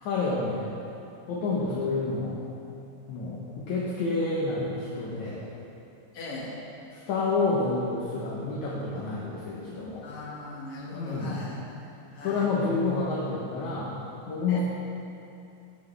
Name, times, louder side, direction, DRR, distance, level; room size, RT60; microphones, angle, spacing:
voice 1, 0.0-0.7 1.3-2.4 3.1-5.4 7.1-10.0 10.9-11.4 12.2-14.0 14.3-14.6, left 3 dB, 65° left, -6 dB, 2.3 m, -29 dB
voice 2, 6.1-6.5 10.0-11.8 12.1-12.5 14.5-14.6, left 2 dB, 50° left, -6 dB, 2.5 m, -39 dB
18.0 x 6.0 x 3.4 m, 2.7 s
omnidirectional pair, 3.9 m